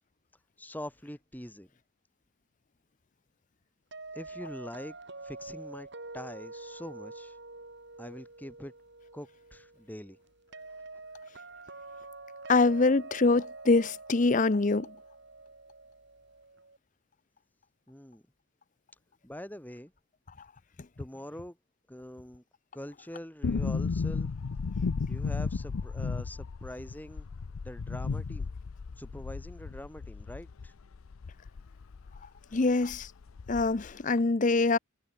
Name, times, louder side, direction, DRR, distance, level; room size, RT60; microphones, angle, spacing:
voice 1, 0.6-1.7 4.1-5.0 5.2-5.9 6.1-7.4 8.0-8.7 9.1-10.2 17.9-18.2 19.2-19.9 21.0-21.6 21.9-22.4 22.7-24.3 25.1-27.3 27.6-28.5 29.0-30.7, left 1 dB, 10° left, 2.3 m, -44 dB
sound 1, 3.9-16.8, right 3 dB, 55° right, 3.5 m, -46 dB
voice 2, 12.5-14.9 32.5-33.1 33.5-34.8, left 3 dB, 35° left, 0.6 m, -24 dB
sound 2, 23.4-32.3 32.5-32.6 32.9-33.9 34.2-34.3, left 4 dB, 85° left, 0.5 m, -34 dB
head